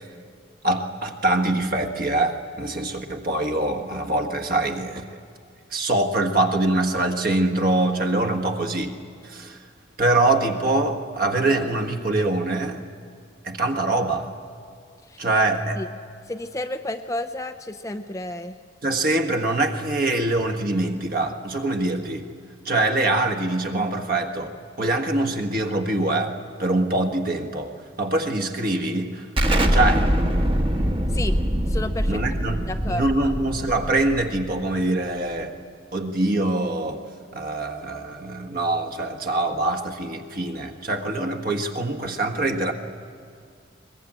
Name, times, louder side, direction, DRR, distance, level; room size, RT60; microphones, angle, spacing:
voice 1, 0.6-5.2 5.7-9.0 9.2-9.6 10.0-12.8 13.4-14.3 15.2-15.8 18.8-22.3 22.6-29.3 29.7-30.1 32.1-35.6 35.9-37.0 37.3-42.7, right 2 dB, 45° right, 5 dB, 1.5 m, -24 dB
voice 2, 15.1-15.4 15.8-15.9 16.3-18.6 31.1-31.4 31.7-32.2 32.7-33.3, left 1 dB, 15° left, 7 dB, 0.5 m, -31 dB
Explosion, 29.4-34.8, equal, 25° right, 1.2 m, -23 dB
22.0 x 21.0 x 8.8 m, 2.2 s
head